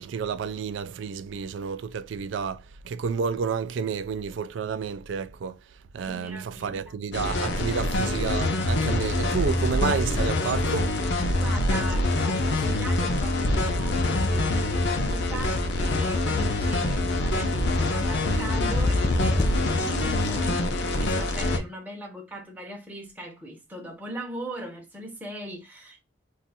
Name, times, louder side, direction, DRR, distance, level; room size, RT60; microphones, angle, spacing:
voice 1, 0.0-5.6 5.9-10.9, right 6 dB, 80° right, 0.3 m, -30 dB
voice 2, 6.0-6.8 11.4-26.0, right 1 dB, 10° right, 0.6 m, -39 dB
sound 1, 7.1-21.6, left 2 dB, 65° left, 0.6 m, -25 dB
sound 2, 13.4-19.8, left 2 dB, 30° left, 0.3 m, -30 dB
2.5 x 2.4 x 4.0 m
head